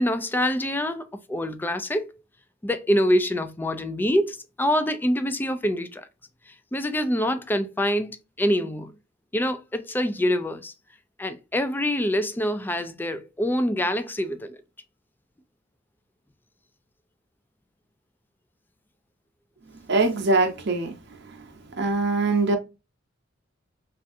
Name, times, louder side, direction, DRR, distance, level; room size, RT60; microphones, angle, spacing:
voice 1, 0.0-2.1 2.6-6.1 6.5-8.9 9.3-10.7 11.2-14.6, equal, 10° left, 0.3 m, -25 dB
voice 2, 19.9-20.9 21.8-22.6, right 3 dB, 60° right, 0.7 m, -22 dB
3.4 x 2.4 x 2.5 m
head